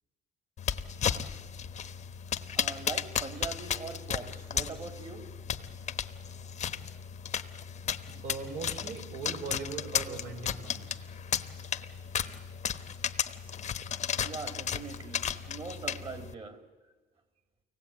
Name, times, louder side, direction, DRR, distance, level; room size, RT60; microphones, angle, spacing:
sound 1, 0.6-16.3, left 8 dB, 45° left, 1.0 m, -35 dB
voice 1, 2.3-5.3 5.6-5.7 14.2-16.6, right 4 dB, 35° right, 7 dB, 2.7 m, -42 dB
voice 2, 8.1-11.0, right 4 dB, 75° right, 3 dB, 5.2 m, -40 dB
24.0 x 18.0 x 8.8 m, 1.3 s
cardioid pair, 110°, 17 cm